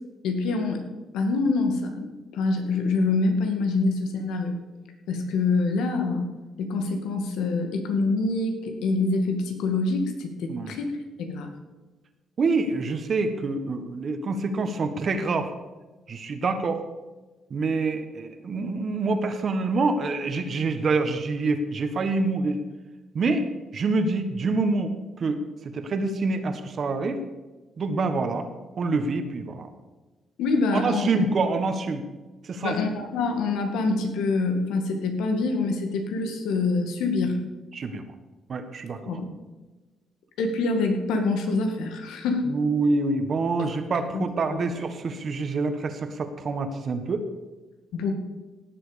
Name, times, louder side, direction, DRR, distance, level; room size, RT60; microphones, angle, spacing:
voice 1, 0.2-0.8 1.1-2.1 2.3-4.5 5.1-6.3 6.6-10.9 11.2-11.5 30.4-31.1 32.6-37.4 39.1-39.2 40.4-42.5 43.6-43.7 44.1-44.6 47.9-48.1, left 3 dB, 90° left, 5 dB, 2.0 m, -25 dB
voice 2, 12.4-15.5 16.1-16.8 17.5-22.6 23.1-27.2 27.8-28.5 28.8-29.7 30.7-32.0 32.4-32.8 37.7-38.0 38.5-39.2 42.5-47.3, right 3 dB, 50° right, 7 dB, 1.5 m, -26 dB
17.5 x 7.8 x 5.2 m, 1.2 s
cardioid pair, 90°, 0 cm